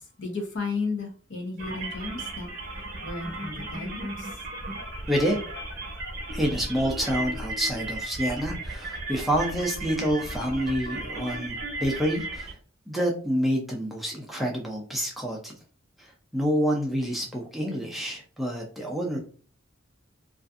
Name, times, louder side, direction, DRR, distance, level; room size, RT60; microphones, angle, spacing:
voice 1, 0.0-2.5 3.0-4.4, left 3 dB, 60° left, 0.7 m, -34 dB
sound 1, 1.6-12.5, right 2 dB, 50° right, 0.7 m, -35 dB
voice 2, 5.1-5.4 6.3-12.5 12.9-15.5 16.0-19.2, equal, ahead, 0.4 m, -28 dB
2.5 x 2.4 x 2.4 m
head